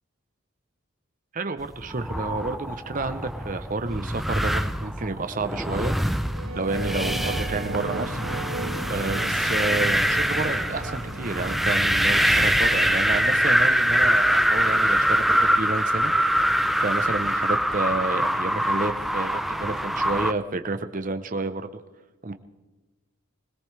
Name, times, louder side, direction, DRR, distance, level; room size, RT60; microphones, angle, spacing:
voice 1, 1.3-5.9 6.5-8.2 8.9-16.1 16.8-21.7 22.2-22.3, right 3 dB, 40° right, 9 dB, 0.7 m, -30 dB
sound 1, 1.8-20.3, equal, ahead, 0.5 m, -24 dB
sound 2, 6.3-14.9, right 3 dB, 80° right, 2.3 m, -37 dB
21.0 x 17.5 x 3.3 m, 1.2 s
head